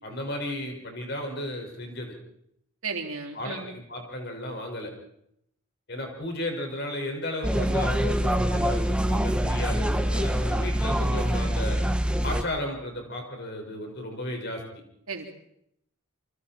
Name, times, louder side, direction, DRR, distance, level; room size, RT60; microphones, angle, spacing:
voice 1, 0.0-2.2 3.3-4.9 5.9-11.8 12.2-14.6, left 1 dB, 50° left, 3 dB, 5.6 m, -34 dB
voice 2, 2.8-3.7 15.1-15.3, right 4 dB, 75° right, 3 dB, 3.5 m, -34 dB
sound 1, 7.4-12.4, equal, 5° right, 1.1 m, -25 dB
28.5 x 25.0 x 4.4 m, 0.74 s
head